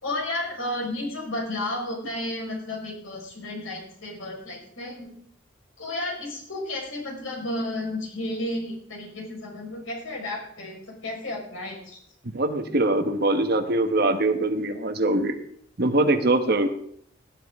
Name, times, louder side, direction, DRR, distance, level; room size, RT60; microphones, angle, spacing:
voice 1, 0.0-5.1 5.8-12.0, left 1 dB, 90° left, 0 dB, 5.0 m, -32 dB
voice 2, 12.3-15.3 15.8-16.7, right 2 dB, 50° right, 7 dB, 1.2 m, -22 dB
18.0 x 11.0 x 3.6 m, 0.66 s
head